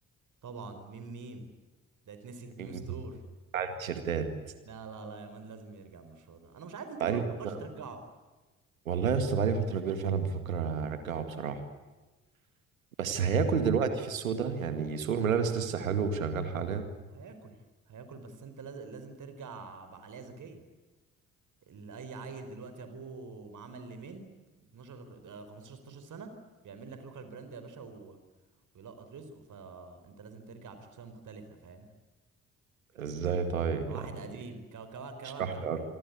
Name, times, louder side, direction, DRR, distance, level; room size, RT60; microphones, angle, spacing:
voice 1, 0.4-1.5 2.1-3.2 4.7-8.0 13.1-13.4 17.1-17.6 17.9-20.6 21.7-24.3 24.5-26.3 26.6-28.2 28.7-31.9 33.9-35.7, right 4 dB, 50° right, 8 dB, 4.6 m, -45 dB
voice 2, 2.6-3.0 3.5-4.3 7.0-7.6 8.9-11.6 13.0-16.8 33.0-34.1 35.2-35.8, right 6 dB, 80° right, 9 dB, 2.1 m, -30 dB
28.0 x 23.5 x 8.4 m, 1.2 s
figure-of-eight pair, 45°, 40 cm